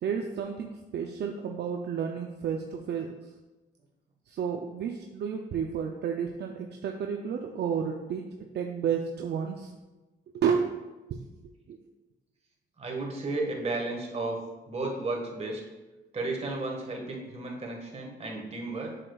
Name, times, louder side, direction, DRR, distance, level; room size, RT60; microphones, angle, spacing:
voice 1, 0.0-3.1 4.3-9.7 10.3-10.7 11.1-11.8, right 7 dB, 60° right, 3 dB, 0.5 m, -31 dB
voice 2, 12.8-14.4 14.7-15.6 16.1-18.9, right 2 dB, 30° right, 0 dB, 1.5 m, -33 dB
7.4 x 6.5 x 2.3 m, 1.1 s
cardioid pair, 90°, 20 cm